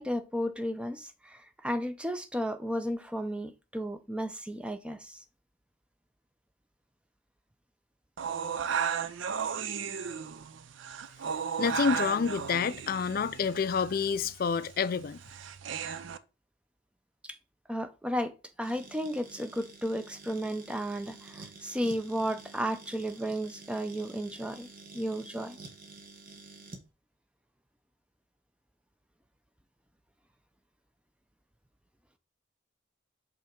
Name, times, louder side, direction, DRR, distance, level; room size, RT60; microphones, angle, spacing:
voice 1, 0.0-5.2 9.4-9.5 17.2-17.4 17.7-24.7 24.9-25.6, equal, 5° right, 0.5 m, -34 dB
sound 1, 8.2-16.2, right 7 dB, 65° right, 0.5 m, -35 dB
voice 2, 11.6-15.2, left 6 dB, 45° left, 0.3 m, -28 dB
sound 2, 18.6-26.9, right 3 dB, 45° right, 1.1 m, -50 dB
5.5 x 3.8 x 4.5 m
head